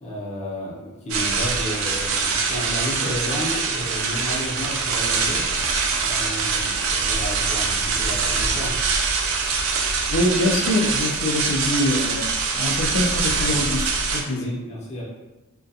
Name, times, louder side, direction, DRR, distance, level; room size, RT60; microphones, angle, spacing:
voice 1, 0.0-5.4 6.0-8.7 13.4-13.7 14.3-15.0, equal, 35° left, -6 dB, 0.7 m, -32 dB
sound 1, 1.1-14.2, right 4 dB, 75° right, 0.4 m, -24 dB
voice 2, 10.1-14.6, left 1 dB, 75° left, 1 dB, 0.4 m, -24 dB
2.4 x 2.2 x 2.6 m, 1.1 s
head